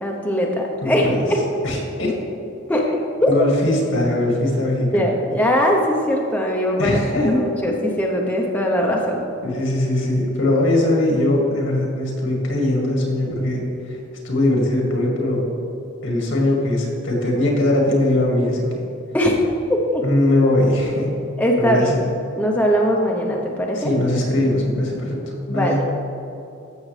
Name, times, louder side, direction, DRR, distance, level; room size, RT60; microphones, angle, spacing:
voice 1, 0.0-1.4 2.7-2.9 3.2-3.5 4.9-7.0 7.3-9.2 19.1-19.3 19.7-20.0 21.4-21.9 22.4-23.9 25.5-25.8, equal, 10° left, -1 dB, 0.7 m, -20 dB
voice 2, 0.8-1.3 1.6-2.1 3.3-5.0 6.8-7.4 9.4-14.0 14.2-15.4 16.0-18.6 20.0-21.1 21.6-22.0 23.8-25.8, left 1 dB, 75° left, -1 dB, 2.0 m, -20 dB
13.5 x 6.4 x 3.3 m, 2.7 s
head